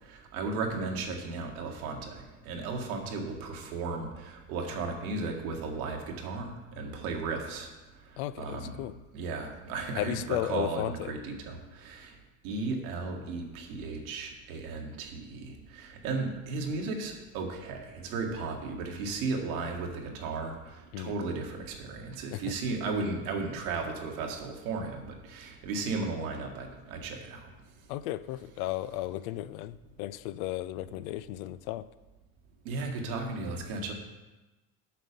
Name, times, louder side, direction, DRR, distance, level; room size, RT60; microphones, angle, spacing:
voice 1, 0.0-7.7 8.4-8.7 9.1-12.1 12.4-27.5 32.7-33.9, right 3 dB, 80° right, 2 dB, 1.7 m, -35 dB
voice 2, 8.2-9.0 9.9-11.1 20.9-21.1 22.3-22.6 27.9-31.9, left 14 dB, 75° left, 15 dB, 0.5 m, -34 dB
7.6 x 6.6 x 5.2 m, 1.1 s
hypercardioid pair, 85°, 42 cm